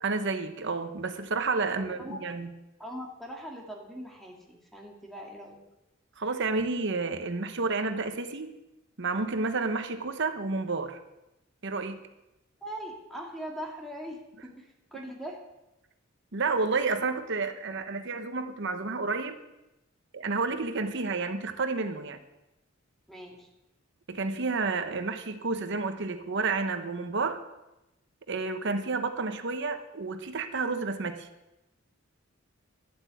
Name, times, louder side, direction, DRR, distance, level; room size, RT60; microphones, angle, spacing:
voice 1, 0.0-2.5 6.2-8.6 9.0-11.0 11.6-12.0 16.3-19.4 20.1-22.2 24.1-27.4 28.3-31.3, right 3 dB, 60° right, 8 dB, 1.0 m, -30 dB
voice 2, 1.8-2.2 2.8-5.6 12.6-15.4 23.1-23.5, equal, ahead, 0 dB, 2.2 m, -41 dB
11.5 x 8.1 x 8.3 m, 0.96 s
head